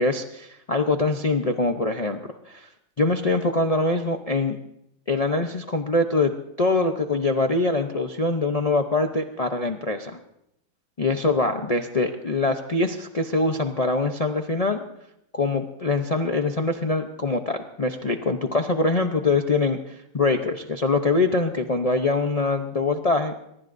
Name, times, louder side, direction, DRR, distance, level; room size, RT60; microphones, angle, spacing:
voice 1, 0.0-2.2 2.5-2.7 3.0-4.6 5.1-6.3 6.6-10.2 11.0-14.8 15.3-23.3, left 3 dB, 35° left, 5 dB, 0.6 m, -23 dB
23.5 x 21.0 x 2.6 m, 0.80 s
omnidirectional pair, 1.7 m